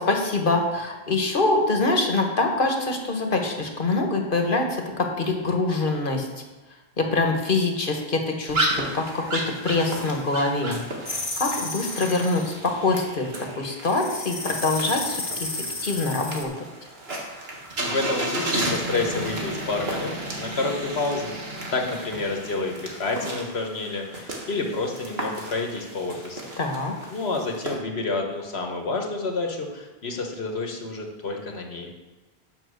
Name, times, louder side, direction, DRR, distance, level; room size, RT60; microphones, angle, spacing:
voice 1, 0.0-6.3 7.0-10.8 11.4-13.3 13.6-16.5 26.6-26.9, left 3 dB, 55° left, 3 dB, 1.4 m, -24 dB
sound 1, 8.5-27.8, right 1 dB, 75° right, 1.9 m, -33 dB
sound 2, 11.0-12.6 13.8-16.4, left 2 dB, 35° left, 1.4 m, -32 dB
voice 2, 17.8-21.3 21.7-26.5 27.1-31.9, left 3 dB, 85° left, 2 dB, 1.6 m, -29 dB
9.2 x 6.1 x 6.4 m, 1.2 s
omnidirectional pair, 1.0 m